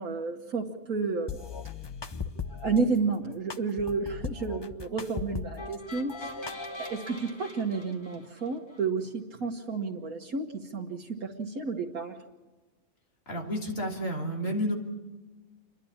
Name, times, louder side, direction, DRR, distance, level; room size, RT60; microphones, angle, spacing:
voice 1, 0.0-1.3 2.6-12.2, right 4 dB, 90° right, -1 dB, 1.7 m, -31 dB
sound 1, 1.3-2.8 3.5-5.8 6.1-7.1, left 5 dB, 35° left, 0.4 m, -38 dB
sound 2, 5.6-8.8, left 1 dB, 20° left, 2.4 m, -44 dB
voice 2, 13.3-14.7, equal, 65° left, -2 dB, 3.7 m, -30 dB
29.0 x 11.5 x 8.6 m, 1.2 s
omnidirectional pair, 1.5 m